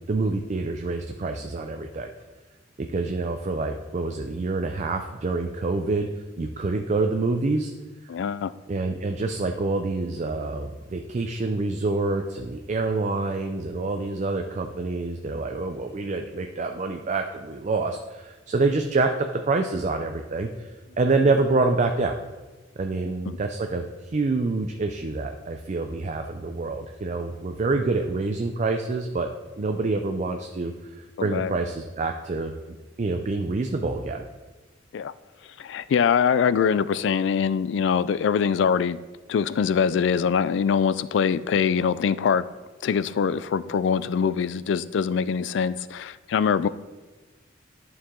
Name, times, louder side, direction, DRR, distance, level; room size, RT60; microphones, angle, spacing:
voice 1, 0.1-2.1 2.9-6.1 6.4-7.7 8.7-20.7 21.0-22.1 22.8-29.3 29.6-30.7 31.0-32.5 33.0-34.2, right 3 dB, 40° right, 5 dB, 0.4 m, -26 dB
voice 2, 8.1-8.5 23.3-23.4 31.2-31.5 34.9-35.1 35.6-39.0 39.3-42.4 42.8-46.7, left 6 dB, 65° left, 16 dB, 0.3 m, -23 dB
11.0 x 4.7 x 3.7 m, 1.2 s
head